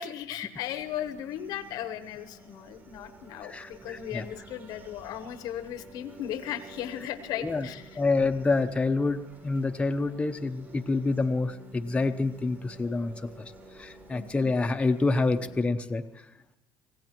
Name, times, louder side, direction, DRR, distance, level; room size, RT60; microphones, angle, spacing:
voice 1, 0.0-8.0 14.1-14.3, left 10 dB, 70° left, 11 dB, 0.9 m, -36 dB
sound 1, 0.5-15.5, right 2 dB, 30° right, 6.6 m, -51 dB
voice 2, 3.5-4.3 7.4-7.7 8.0-13.1 13.7-16.0, left 3 dB, 15° left, 5 dB, 0.7 m, -27 dB
24.5 x 16.0 x 3.0 m, 0.95 s
supercardioid pair, 100°, 7 cm